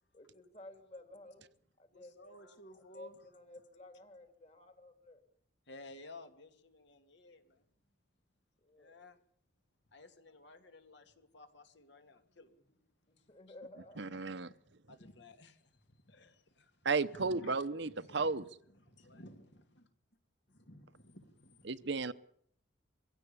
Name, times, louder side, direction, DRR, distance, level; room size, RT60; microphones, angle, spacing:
voice 1, 0.1-1.5 1.8-5.2 8.6-9.0 13.1-14.2, left 2 dB, 35° left, 3.4 m, -54 dB
voice 2, 1.9-3.2 5.7-7.6 8.8-9.2 9.9-12.5 14.1-14.2 14.9-16.7 17.1-19.5 20.5-21.8, left 2 dB, 60° left, 2.5 m, -55 dB
voice 3, 14.0-14.5 16.8-18.4 21.7-22.1, right 4 dB, 60° right, 0.9 m, -33 dB
23.0 x 16.5 x 8.7 m
head